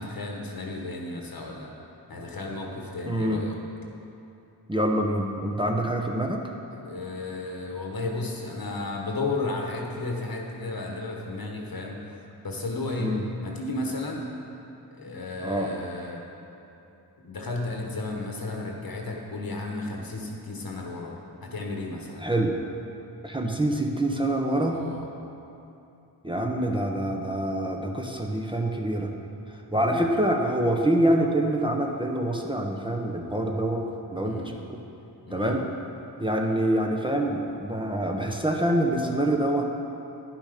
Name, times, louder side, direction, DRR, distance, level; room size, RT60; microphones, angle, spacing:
voice 1, 0.0-1.7 2.1-3.6 6.7-12.0 12.4-14.3 14.9-16.2 17.2-22.3 24.7-25.1 29.7-30.0 34.2-34.5 35.3-35.6, left 2 dB, 55° left, 0 dB, 1.3 m, -33 dB
voice 2, 3.1-3.4 4.7-6.4 13.0-13.2 15.4-15.7 22.2-22.6 23.2-24.8 26.2-29.1 29.7-33.8 34.1-34.8 35.3-35.6 36.2-39.7, right 1 dB, 10° right, 1 dB, 0.9 m, -26 dB
10.0 x 6.0 x 5.1 m, 2.8 s
cardioid pair, 55°, 42 cm